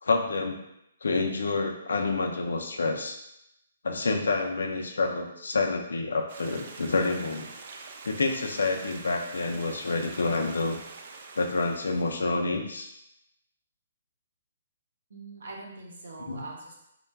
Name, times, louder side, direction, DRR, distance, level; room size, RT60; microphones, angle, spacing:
voice 1, 0.0-0.6 1.0-3.2 3.8-7.5 8.0-10.8 11.4-12.9 16.2-16.4, left 3 dB, 85° left, 3 dB, 0.4 m, -28 dB
Stream, 6.3-12.4, right 4 dB, 55° right, 0.3 m, -45 dB
voice 2, 15.1-16.7, right 3 dB, 80° right, -2 dB, 0.7 m, -42 dB
3.3 x 2.1 x 2.2 m, 0.82 s
hypercardioid pair, 150°, 0 cm